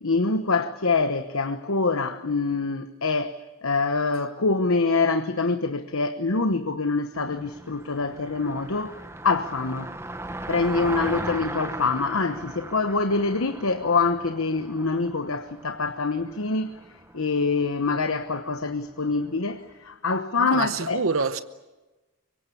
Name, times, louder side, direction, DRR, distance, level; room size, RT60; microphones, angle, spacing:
voice 1, 0.0-9.0 9.2-9.9 10.5-16.8 17.1-21.0, left 3 dB, 75° left, 1.1 m, -25 dB
Car passing by, 7.1-19.5, right 2 dB, 10° right, 0.9 m, -38 dB
voice 2, 20.4-21.4, right 4 dB, 75° right, 0.9 m, -26 dB
25.0 x 24.0 x 8.5 m
head